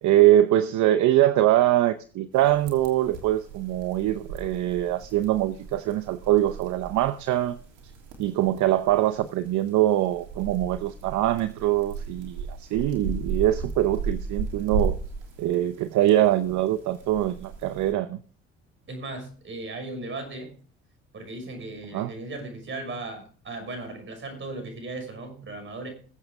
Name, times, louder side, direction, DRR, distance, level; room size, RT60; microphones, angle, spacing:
voice 1, 0.0-7.6 8.2-15.0 15.4-18.2 21.9-22.1, right 13 dB, 65° right, 11 dB, 0.8 m, -23 dB
sound 1, 2.3-17.9, right 4 dB, 90° right, 3.3 m, -36 dB
voice 2, 18.9-20.5 21.1-25.9, right 2 dB, 40° right, 6 dB, 6.0 m, -37 dB
21.0 x 8.1 x 3.6 m, 0.42 s
supercardioid pair, 80°, 31 cm